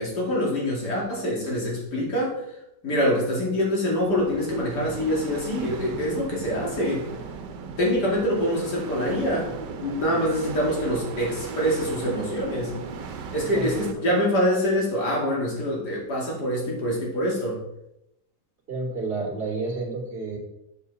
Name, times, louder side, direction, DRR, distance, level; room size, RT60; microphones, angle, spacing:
voice 1, 0.0-2.4 2.8-7.1 7.8-9.5 9.8-12.7 13.3-17.6, equal, 65° left, -3 dB, 3.1 m, -25 dB
sound 1, 3.8-13.9, right 5 dB, 85° right, 1.5 m, -37 dB
voice 2, 13.4-14.0 18.7-20.4, right 3 dB, 30° right, -1 dB, 2.3 m, -30 dB
7.2 x 7.0 x 4.1 m, 0.83 s
omnidirectional pair, 1.9 m